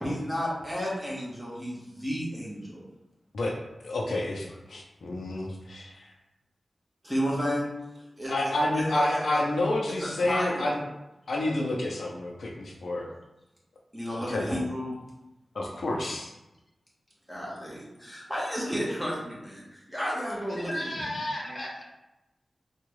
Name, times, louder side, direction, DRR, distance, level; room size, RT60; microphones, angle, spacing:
voice 1, 0.0-2.8 7.0-7.7 8.2-9.4 9.9-10.7 13.9-14.9 17.3-20.8 21.5-21.6, equal, ahead, -6 dB, 1.2 m, -32 dB
voice 2, 3.8-6.1 8.3-10.8 11.3-13.1 14.3-14.5 15.5-16.3, left 1 dB, 85° left, -1 dB, 0.5 m, -29 dB
voice 3, 20.5-21.8, left 1 dB, 45° left, -2 dB, 0.7 m, -34 dB
3.6 x 2.3 x 3.1 m, 0.96 s
wide cardioid pair, 105°, 0 cm